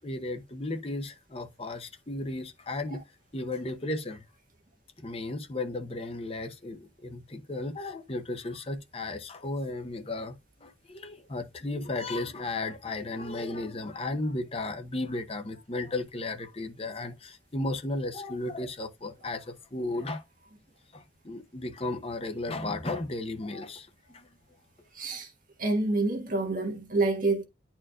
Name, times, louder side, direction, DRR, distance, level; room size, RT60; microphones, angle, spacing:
voice 1, 0.0-3.0 3.3-4.2 5.0-10.3 10.6-20.2 20.9-23.9 24.1-24.3, left 2 dB, 30° left, 0.8 m, -34 dB
voice 2, 24.9-25.3 25.6-27.4, right 2 dB, 45° right, 1.6 m, -27 dB
10.5 x 4.4 x 2.4 m
head